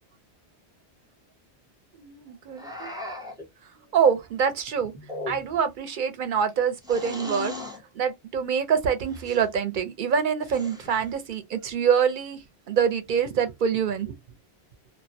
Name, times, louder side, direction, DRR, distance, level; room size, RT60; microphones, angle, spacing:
voice 1, 2.0-2.9 3.9-4.9 5.3-7.5 7.9-14.1, right 7 dB, 60° right, 0.6 m, -25 dB
sound 1, 2.6-3.5 5.0-5.7 6.8-7.8 9.1-9.5 10.4-11.1, left 1 dB, 5° right, 0.4 m, -37 dB
2.3 x 2.1 x 2.5 m
omnidirectional pair, 1.1 m